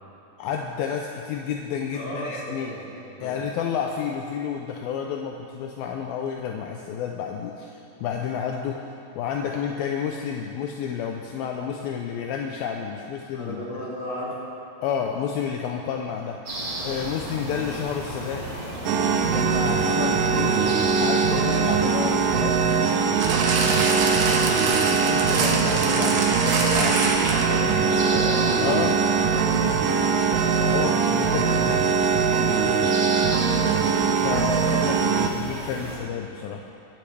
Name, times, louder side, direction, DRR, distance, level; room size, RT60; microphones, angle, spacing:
voice 1, 0.4-2.7 3.2-8.8 9.2-13.7 14.8-16.4 16.8-18.5 19.3-20.5 21.0-22.5 24.9-27.0 28.6-29.0 30.6-31.9 34.0-36.7, left 7 dB, 80° left, 1 dB, 2.2 m, -30 dB
voice 2, 1.9-3.5 13.3-14.3 19.9-20.7 21.0-21.2 23.7-24.9 27.4-28.3 30.5-31.6, equal, 35° left, -8 dB, 4.1 m, -36 dB
sound 1, 16.5-36.0, right 1 dB, 40° right, 4.3 m, -35 dB
sound 2, 18.8-35.3, right 5 dB, 90° right, 1.9 m, -22 dB
sound 3, 23.2-27.7 28.4-28.5, right 3 dB, 75° right, 3.3 m, -26 dB
23.5 x 10.5 x 3.4 m, 2.7 s
omnidirectional pair, 4.9 m